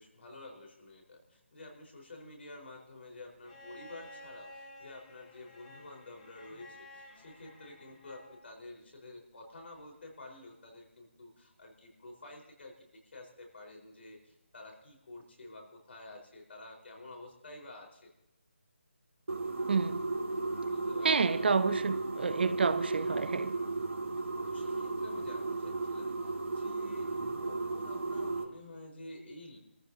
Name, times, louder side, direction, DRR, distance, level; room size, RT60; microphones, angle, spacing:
voice 1, 0.0-18.1 20.7-21.2 24.4-29.6, left 2 dB, 65° left, 1 dB, 4.3 m, -50 dB
Bowed string instrument, 3.4-8.5 9.9-10.0, left 1 dB, 30° left, 3.0 m, -53 dB
sound 1, 19.3-28.4, right 3 dB, 85° right, 2.0 m, -35 dB
voice 2, 19.7-20.0 21.0-23.5, right 5 dB, 55° right, 12 dB, 0.8 m, -29 dB
27.0 x 14.5 x 2.7 m, 0.88 s
figure-of-eight pair, 165°, 7 cm